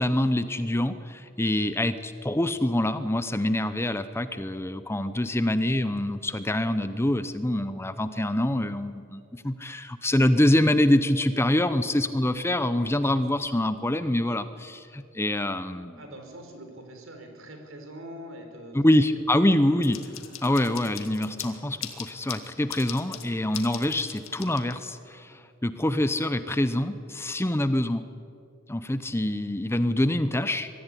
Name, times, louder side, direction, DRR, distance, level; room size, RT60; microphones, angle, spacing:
voice 1, 0.0-16.0 18.7-20.0 20.4-28.0 28.7-30.7, left 1 dB, 10° left, 11 dB, 0.7 m, -25 dB
voice 2, 16.0-19.2, equal, 75° right, 4 dB, 4.5 m, -43 dB
sound 1, 19.8-25.1, left 10 dB, 75° left, 2.0 m, -41 dB
24.0 x 15.0 x 9.8 m, 2.5 s
head